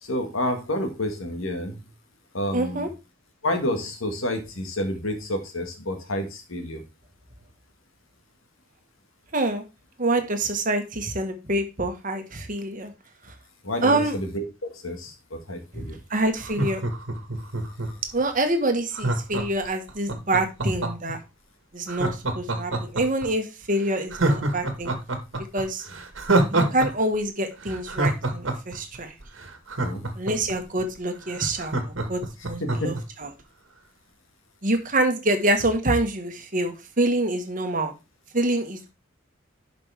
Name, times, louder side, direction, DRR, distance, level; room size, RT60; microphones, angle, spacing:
voice 1, 0.0-1.8 2.3-2.9 3.4-6.8 13.6-14.4 14.7-16.0 23.8-24.0 29.8-30.0 32.8-33.0, left 1 dB, 85° left, 6 dB, 1.7 m, -29 dB
voice 2, 2.5-2.9 9.3-9.6 10.0-12.9 13.8-14.1 15.7-15.8 16.1-16.8 18.1-21.2 21.7-24.9 25.5-25.8 26.5-29.1 30.2-33.3 34.6-37.9 38.3-38.9, right 1 dB, 40° right, 6 dB, 1.4 m, -26 dB
Laughter, 16.4-18.1 18.9-21.1 21.9-23.3 23.6-23.7 24.1-26.9 27.1-27.2 27.6-30.5 31.0-31.1 31.3-33.0 33.4-33.5, right 2 dB, 70° right, 1.5 m, -26 dB
11.0 x 5.3 x 3.4 m, 0.27 s
head